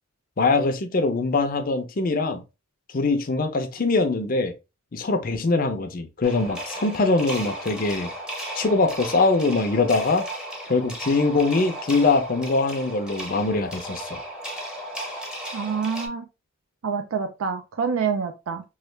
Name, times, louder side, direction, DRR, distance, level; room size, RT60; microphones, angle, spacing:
voice 1, 0.4-2.4 2.9-4.5 4.9-8.1 8.6-10.2 10.7-14.2, left 3 dB, 40° left, 0.5 m, -22 dB
sound 1, 6.2-16.1, equal, 5° right, 0.7 m, -35 dB
voice 2, 15.5-16.3 16.8-18.6, right 6 dB, 75° right, 0.4 m, -27 dB
3.1 x 2.3 x 3.2 m
head